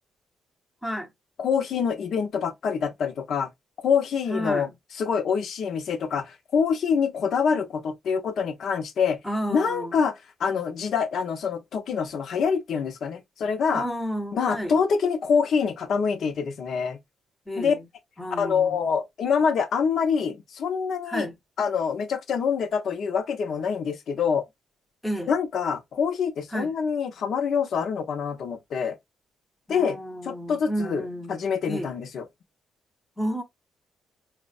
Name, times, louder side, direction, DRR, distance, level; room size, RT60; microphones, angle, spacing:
voice 1, 1.4-3.5 3.8-4.7 5.0-9.2 9.5-13.9 14.3-17.0 17.6-17.8 18.3-21.3 21.6-24.4 25.3-29.0 29.7-30.0 30.2-32.2, left 6 dB, 65° left, 0.6 m, -25 dB
voice 2, 4.3-4.7 9.2-10.0 13.7-14.8 17.5-17.9 18.2-19.0 21.1-21.4 25.0-25.3 26.5-26.7 29.7-31.3 31.7-31.9 33.2-33.4, equal, 5° left, 0.8 m, -31 dB
4.3 x 2.1 x 2.4 m
cardioid pair, 105°, 0 cm